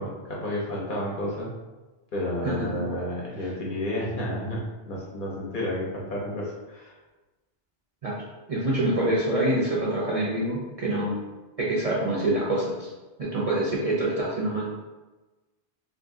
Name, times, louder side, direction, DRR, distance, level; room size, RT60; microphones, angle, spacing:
voice 1, 0.0-1.5 2.1-7.0, left 1 dB, 55° left, -4 dB, 0.9 m, -31 dB
voice 2, 2.4-2.8 8.0-8.2 8.5-11.2 11.6-12.9 13.2-14.8, right 1 dB, 45° right, -6 dB, 0.5 m, -26 dB
2.6 x 2.6 x 3.6 m, 1.2 s
omnidirectional pair, 1.1 m